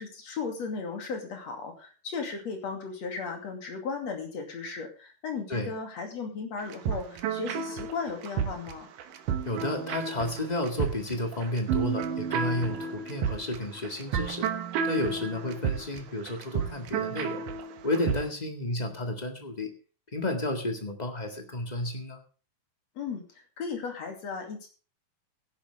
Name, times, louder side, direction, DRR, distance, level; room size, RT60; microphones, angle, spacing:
voice 1, 0.0-8.9 23.0-24.7, left 5 dB, 55° left, 3 dB, 3.6 m, -36 dB
sound 1, 6.6-18.2, right 6 dB, 75° right, 2.7 m, -32 dB
voice 2, 9.4-14.5 14.8-17.4 17.8-19.7 20.1-22.2, left 1 dB, 20° left, 4 dB, 1.2 m, -31 dB
17.0 x 10.5 x 3.5 m, 0.36 s
omnidirectional pair, 3.9 m